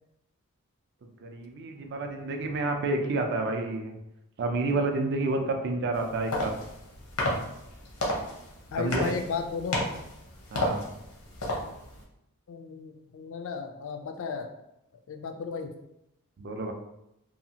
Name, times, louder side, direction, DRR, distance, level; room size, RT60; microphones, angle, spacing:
voice 1, 1.2-3.9 4.4-6.5 8.8-9.1 10.5-10.9 16.4-16.7, right 2 dB, 50° right, 4 dB, 0.4 m, -29 dB
sound 1, 5.9-12.0, left 1 dB, 80° left, 0.7 m, -33 dB
voice 2, 8.7-9.8 12.5-14.5 15.1-15.7, left 4 dB, 60° left, 6 dB, 0.3 m, -34 dB
2.7 x 2.4 x 2.7 m, 0.86 s
head